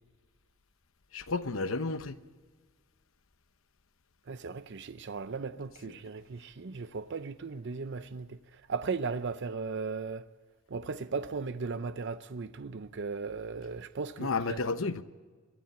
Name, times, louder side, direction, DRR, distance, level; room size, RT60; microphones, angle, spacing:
voice 1, 1.1-2.2 14.2-15.0, left 3 dB, 75° left, 1.0 m, -31 dB
voice 2, 4.3-8.4 8.7-10.2 10.7-14.6, right 4 dB, 60° right, 0.6 m, -37 dB
22.0 x 12.5 x 9.8 m
head